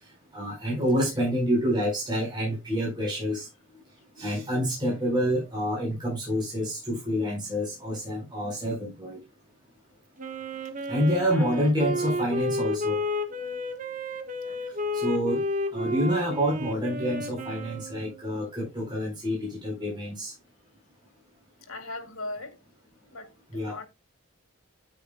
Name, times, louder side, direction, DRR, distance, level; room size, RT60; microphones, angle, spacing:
voice 1, 0.3-3.5 4.2-9.2 10.9-13.0 14.9-15.4 15.7-20.3 23.5-23.7, equal, 20° right, 4.5 m, -27 dB
Wind instrument woodwind instrument, 10.2-18.3, left 1 dB, 40° right, 1.3 m, -31 dB
voice 2, 11.1-12.1 13.4-13.6 14.4-14.7 21.7-22.6 23.1-23.9, left 2 dB, 80° left, 2.2 m, -40 dB
9.4 x 9.4 x 2.3 m
head